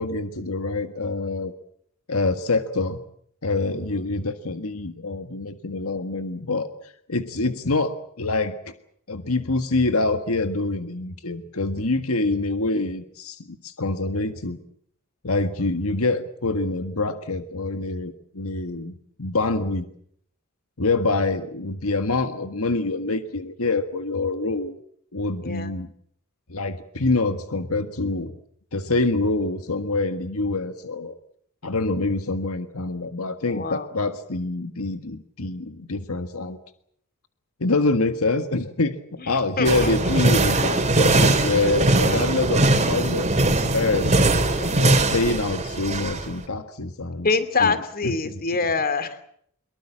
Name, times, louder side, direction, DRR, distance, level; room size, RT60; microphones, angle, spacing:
voice 1, 0.0-1.5 2.1-3.0 3.4-8.7 9.1-14.6 15.2-19.9 20.8-24.7 25.1-25.9 26.5-28.3 28.7-31.1 31.6-36.6 37.6-39.0 39.3-44.2 44.8-47.3 47.6-47.8 48.0-48.4, left 3 dB, 75° left, 9 dB, 1.6 m, -26 dB
voice 2, 25.4-25.7 33.5-33.9 39.6-39.9 41.9-42.3 44.6-45.0 47.2-49.2, left 4 dB, 45° left, 12 dB, 2.6 m, -25 dB
sound 1, 39.7-46.3, right 2 dB, 30° right, 3.3 m, -20 dB
24.0 x 23.0 x 7.5 m, 0.66 s
head